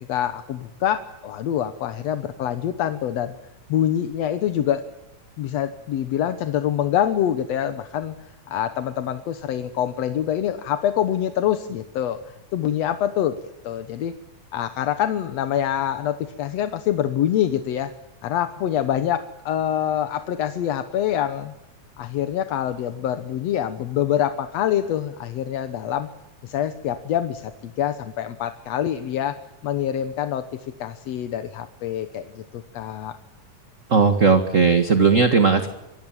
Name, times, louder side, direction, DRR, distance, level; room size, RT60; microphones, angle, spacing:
voice 1, 0.1-3.3 3.7-4.9 5.4-8.2 8.5-12.2 12.5-13.4 13.6-14.1 14.5-17.9 18.2-21.5 22.0-26.1 26.4-29.3 29.6-30.4 30.8-33.2, left 10 dB, 65° left, 10 dB, 2.1 m, -25 dB
voice 2, 33.9-35.7, right 4 dB, 30° right, 8 dB, 1.6 m, -17 dB
27.0 x 24.0 x 7.4 m, 0.92 s
omnidirectional pair, 3.6 m